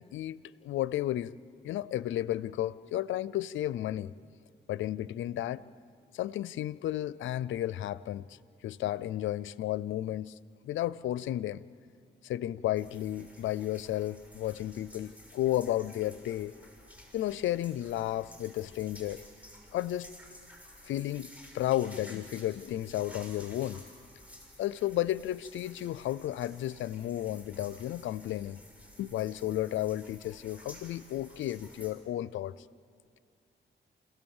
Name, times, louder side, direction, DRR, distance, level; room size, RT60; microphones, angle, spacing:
voice 1, 0.0-1.3 1.6-4.1 4.7-5.6 6.1-8.4 8.6-10.4 10.6-11.6 12.2-16.5 17.1-19.2 19.7-20.1 20.8-23.8 24.6-28.6 29.0-32.5, left 13 dB, 90° left, 19 dB, 0.5 m, -33 dB
sound 1, 12.8-31.9, equal, 5° right, 5.8 m, -53 dB
29.0 x 16.5 x 7.2 m, 2.3 s
cardioid pair, 60°, 19 cm